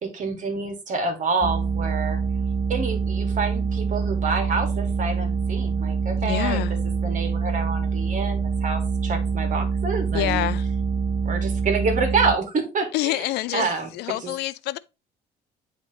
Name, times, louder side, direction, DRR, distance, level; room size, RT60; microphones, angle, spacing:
voice 1, 0.0-2.2 2.7-6.6 7.0-10.5 11.2-13.3 13.5-13.9 14.2-14.3, right 4 dB, 50° right, 1.9 m, -27 dB
sound 1, 1.4-12.3, right 5 dB, 15° right, 0.6 m, -25 dB
voice 2, 6.2-6.7 10.1-10.7 12.9-14.8, left 16 dB, 80° left, 0.4 m, -27 dB
9.8 x 3.3 x 2.9 m
cardioid pair, 110°, 17 cm